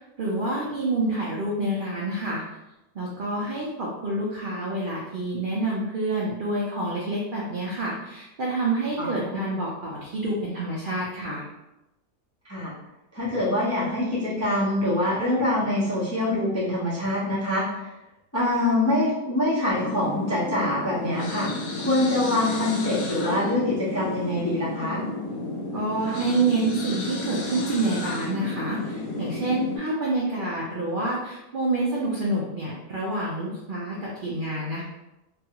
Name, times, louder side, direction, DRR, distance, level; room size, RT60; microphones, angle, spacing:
voice 1, 0.0-2.4 2.9-11.4 25.7-34.8, right 2 dB, 80° right, -5 dB, 0.4 m, -28 dB
voice 2, 9.0-9.5 12.5-12.7 13.1-17.9 18.3-21.5 21.8-25.0, left 1 dB, 20° left, -9 dB, 0.4 m, -25 dB
sound 1, 19.7-29.8, left 2 dB, 80° left, 1.1 m, -32 dB
2.6 x 2.3 x 2.8 m, 0.93 s
omnidirectional pair, 1.6 m